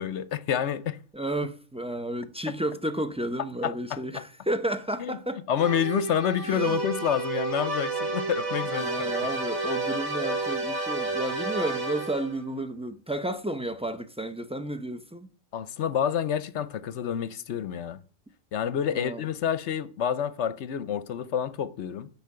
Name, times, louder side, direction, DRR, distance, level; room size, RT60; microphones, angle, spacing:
voice 1, 0.0-1.0 2.5-2.6 3.6-4.2 5.0-5.2 5.5-9.1 15.5-18.0 18.5-22.1, left 9 dB, 65° left, 0.9 m, -28 dB
voice 2, 1.1-5.4 6.4-6.8 8.7-15.3 18.9-19.2, right 1 dB, 5° right, 0.5 m, -32 dB
sound 1, 5.6-12.4, right 3 dB, 85° right, 3.0 m, -30 dB
10.5 x 5.7 x 7.6 m
omnidirectional pair, 1.4 m